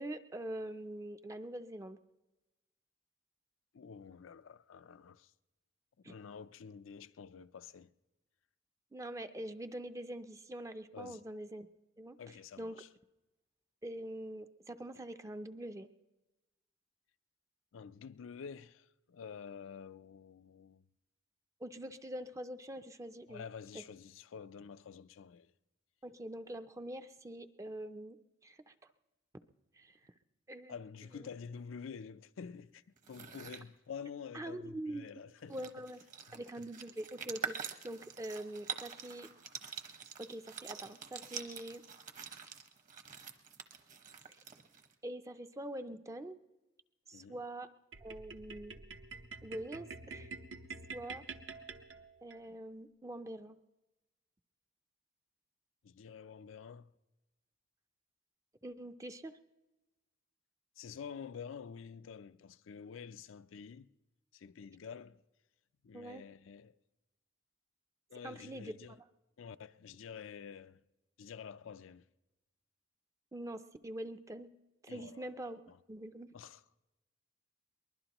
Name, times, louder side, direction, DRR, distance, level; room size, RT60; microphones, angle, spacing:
voice 1, 0.0-2.0 6.0-6.1 8.9-11.7 12.0-12.2 12.6-12.8 13.8-15.9 21.6-23.5 23.7-23.8 26.0-28.2 28.4-28.7 29.7-30.1 30.5-30.8 31.1-31.3 34.3-35.1 35.5-36.0 36.3-37.6 37.8-39.3 39.7-39.8 40.2-41.8 45.0-46.4 47.1-47.7 48.0-48.8 49.4-50.3 50.9-51.2 52.2-53.6 58.6-59.4 65.9-66.2 68.2-68.8 73.3-74.5 74.8-75.6 75.9-76.3, right 1 dB, 15° right, 0.4 m, -44 dB
voice 2, 3.7-5.3 6.0-7.9 10.9-11.2 12.2-12.9 17.7-20.8 23.3-25.5 30.7-35.7 36.3-36.4 47.1-47.4 55.8-56.9 60.8-63.9 64.3-65.2 65.8-66.7 68.1-69.0 69.4-70.8 71.2-72.0 74.9-75.8 76.3-76.6, left 6 dB, 85° left, 0.4 m, -49 dB
sound 1, 33.0-33.6 35.1-35.2 35.4-44.9, right 7 dB, 40° right, 1.0 m, -46 dB
sound 2, 47.9-52.4, right 4 dB, 70° right, 0.9 m, -48 dB
22.5 x 20.5 x 3.0 m
head